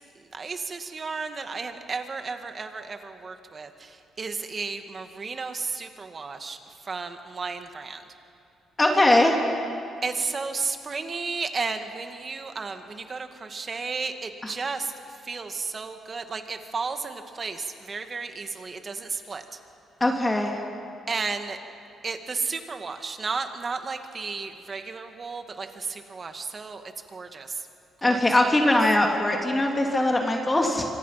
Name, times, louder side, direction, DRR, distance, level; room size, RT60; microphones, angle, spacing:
voice 1, 0.3-6.6 6.8-8.0 10.0-14.9 15.2-19.4 21.1-21.6 22.0-26.8 27.1-27.7 28.0-28.3, right 4 dB, 40° right, 7 dB, 1.9 m, -33 dB
voice 2, 8.8-9.4 20.0-20.5 28.0-30.9, left 1 dB, 15° left, 1 dB, 2.7 m, -21 dB
26.5 x 24.0 x 5.9 m, 2.6 s
cardioid pair, 90°, 0 cm